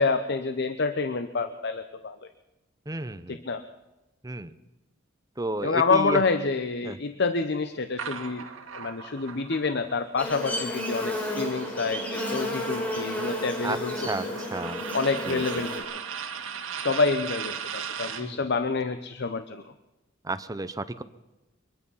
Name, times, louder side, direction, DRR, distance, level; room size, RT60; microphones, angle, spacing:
voice 1, 0.0-2.2 3.3-3.6 5.6-8.5 8.7-14.4 14.9-16.0 16.8-19.6, left 4 dB, 55° left, 10 dB, 0.8 m, -28 dB
voice 2, 2.9-3.4 4.2-4.5 5.4-6.2 6.8-7.0 13.6-13.8 14.1-14.8 15.3-15.6 18.2-18.4 20.2-21.0, right 2 dB, 20° right, 12 dB, 0.7 m, -32 dB
sound 1, 8.0-12.0 12.4-18.3, right 7 dB, 80° right, 1.9 m, -38 dB
Buzz, 10.2-15.8, left 1 dB, 10° left, 5.1 m, -32 dB
23.5 x 21.0 x 5.6 m, 1.0 s
head